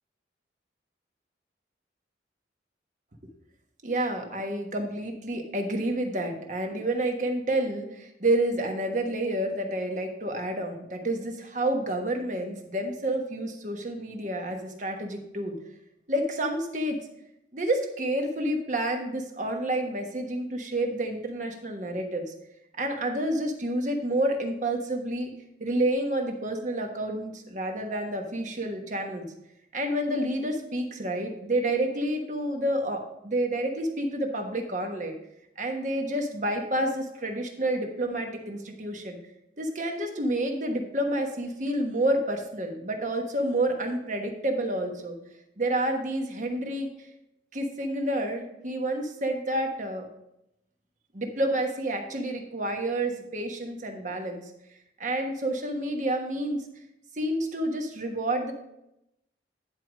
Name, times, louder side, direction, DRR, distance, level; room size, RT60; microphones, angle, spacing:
voice 1, 3.8-15.6 16.1-17.0 17.5-22.3 22.8-25.3 25.6-29.3 29.7-35.1 35.6-39.2 39.6-45.2 45.6-46.9 47.5-50.1 51.1-54.4 55.0-56.6 57.1-58.5, right 1 dB, 40° right, 3 dB, 1.2 m, -29 dB
10.0 x 4.7 x 5.1 m, 0.83 s
head